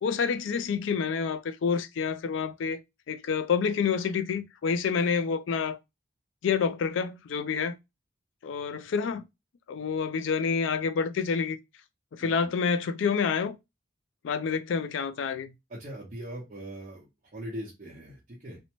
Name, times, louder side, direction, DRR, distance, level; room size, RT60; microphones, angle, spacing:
voice 1, 0.0-2.8 3.1-5.8 6.4-7.8 8.4-9.2 9.7-11.6 12.1-13.6 14.2-15.5, left 6 dB, 70° left, 0.4 m, -28 dB
voice 2, 12.2-12.5 15.7-18.6, equal, 40° right, 0.8 m, -41 dB
2.6 x 2.1 x 2.8 m
head